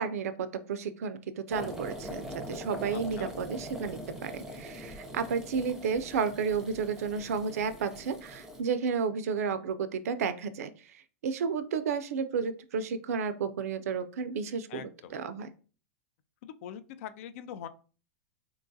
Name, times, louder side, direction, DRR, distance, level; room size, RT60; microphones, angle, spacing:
voice 1, 0.0-15.5, right 6 dB, 80° right, 12 dB, 0.4 m, -32 dB
sound 1, 1.5-8.6, equal, 5° right, 0.6 m, -42 dB
voice 2, 14.7-15.1 16.4-17.7, left 9 dB, 65° left, 12 dB, 0.4 m, -43 dB
3.7 x 2.3 x 2.6 m, 0.37 s
hypercardioid pair, 115°, 8 cm